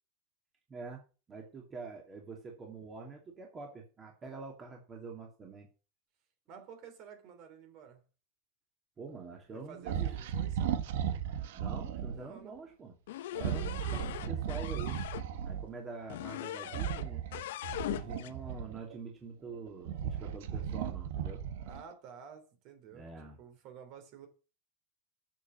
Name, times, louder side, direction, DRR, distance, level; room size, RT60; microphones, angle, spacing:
voice 1, 0.7-1.0 1.3-5.7 9.0-10.1 11.5-12.9 13.4-15.0 15.4-17.2 17.8-21.4 22.9-23.4, right 4 dB, 20° right, 2.6 m, -45 dB
voice 2, 6.5-8.0 9.5-10.8 11.9-12.5 21.6-23.1 23.4-24.3, right 7 dB, 45° right, 3.3 m, -51 dB
sound 1, 9.8-12.2 13.3-15.7 16.7-19.0 19.5-21.9, right 9 dB, 75° right, 1.4 m, -36 dB
sound 2, 13.1-15.2 16.1-17.1 17.3-18.3, left 14 dB, 80° left, 0.8 m, -40 dB
9.0 x 7.0 x 7.5 m
supercardioid pair, 160°, 0 cm